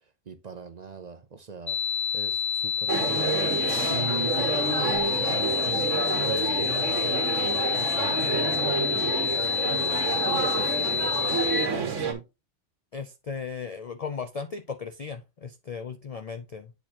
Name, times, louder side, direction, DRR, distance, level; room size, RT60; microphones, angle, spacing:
voice 1, 0.3-1.8 2.1-3.4 3.9-5.8 6.2-10.2 10.5-12.2, right 5 dB, 45° right, 0.6 m, -39 dB
sound 1, 1.7-11.7, left 7 dB, 30° left, 0.7 m, -28 dB
sound 2, 2.9-12.1, right 5 dB, 90° right, 1.5 m, -28 dB
voice 2, 12.9-16.7, left 5 dB, 60° left, 0.4 m, -36 dB
8.2 x 4.4 x 2.8 m
omnidirectional pair, 1.2 m